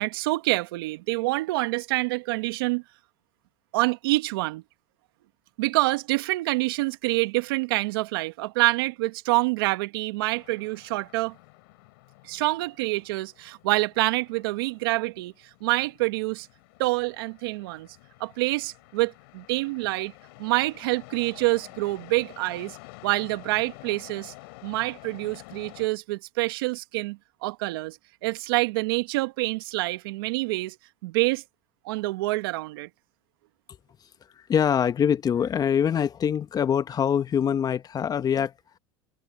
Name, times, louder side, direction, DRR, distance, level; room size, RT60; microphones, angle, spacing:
voice 1, 0.0-2.8 3.7-4.6 5.6-11.3 12.2-15.3 15.6-16.5 16.8-17.9 18.2-20.1 20.4-22.8 23.0-24.3 24.6-30.8 31.0-31.4 31.8-32.9, right 22 dB, 75° right, 1.7 m, -26 dB
sound 1, 10.3-25.9, left 26 dB, 70° left, 3.7 m, -50 dB
voice 2, 34.5-38.5, left 8 dB, 30° left, 1.3 m, -24 dB
hypercardioid pair, 100°, 12 cm